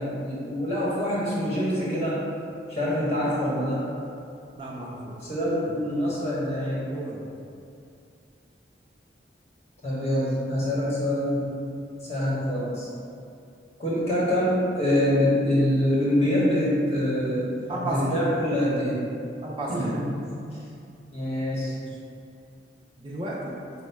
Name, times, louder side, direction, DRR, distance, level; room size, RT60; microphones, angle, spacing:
voice 1, 0.0-2.2 2.7-3.9 5.2-6.9 9.8-11.6 12.0-12.9 13.8-17.5 17.9-19.0 19.7-20.1 21.1-21.8, left 1 dB, 35° left, -7 dB, 0.9 m, -25 dB
voice 2, 4.6-5.2 5.7-5.8 6.8-7.3 17.7-18.2 19.4-20.0 21.7-22.0 23.0-23.6, right 1 dB, 30° right, -4 dB, 0.4 m, -33 dB
4.2 x 2.1 x 4.4 m, 2.5 s
head